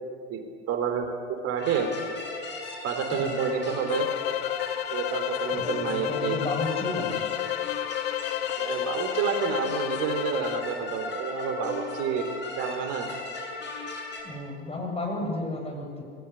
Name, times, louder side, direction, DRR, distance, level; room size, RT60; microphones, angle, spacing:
voice 1, 0.3-1.9 2.8-4.1 4.9-6.4 8.6-12.2 12.6-13.1, right 7 dB, 45° right, 4 dB, 3.6 m, -29 dB
sound 1, 1.6-14.2, left 3 dB, 30° left, 7.5 m, -37 dB
sound 2, 3.9-10.7, left 15 dB, 60° left, 0.8 m, -31 dB
voice 2, 5.5-7.3 14.2-16.0, left 2 dB, 15° left, 2 dB, 7.8 m, -33 dB
28.0 x 21.5 x 9.9 m, 2.4 s
figure-of-eight pair, 75°, 35 cm